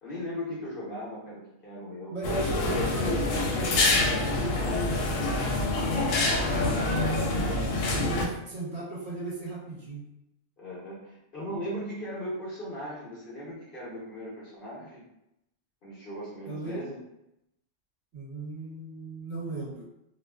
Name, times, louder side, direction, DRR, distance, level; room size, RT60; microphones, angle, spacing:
voice 1, 0.0-2.1 10.6-15.0 15.8-17.0, equal, 50° left, -7 dB, 0.7 m, -38 dB
voice 2, 2.1-5.4 6.2-7.6 8.0-10.0 16.4-16.8 18.1-19.8, right 2 dB, 60° right, -4 dB, 0.8 m, -37 dB
sound 1, 2.2-8.2, left 2 dB, 80° left, 1.0 m, -26 dB
2.4 x 2.4 x 2.2 m, 0.84 s
omnidirectional pair, 1.4 m